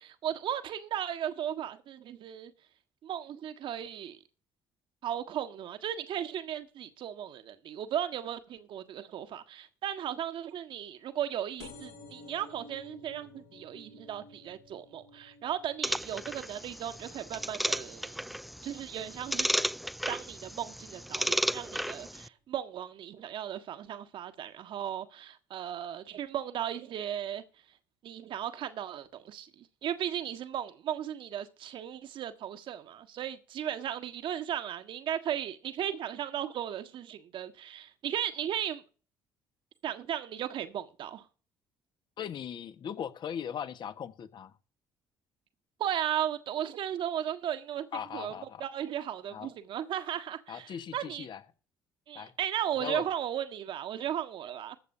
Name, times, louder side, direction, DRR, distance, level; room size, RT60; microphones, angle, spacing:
voice 1, 0.0-2.5 3.0-4.2 5.0-18.2 18.6-19.5 20.1-27.4 28.0-38.8 39.8-41.2 45.8-47.9 48.1-48.3 48.6-51.3 52.1-54.8, right 10 dB, 60° right, 1.5 m, -36 dB
sound 1, 11.6-18.8 19.3-19.8 20.6-20.7 20.9-21.0 21.3-21.4, left 2 dB, 80° left, 6.7 m, -53 dB
sound 2, 15.8-22.3, equal, ahead, 0.4 m, -34 dB
voice 2, 42.2-44.5 47.9-48.6 49.3-49.5 50.5-51.4 52.1-52.3 52.8-53.0, left 8 dB, 50° left, 1.4 m, -39 dB
21.0 x 8.3 x 2.8 m
hypercardioid pair, 50°, 10 cm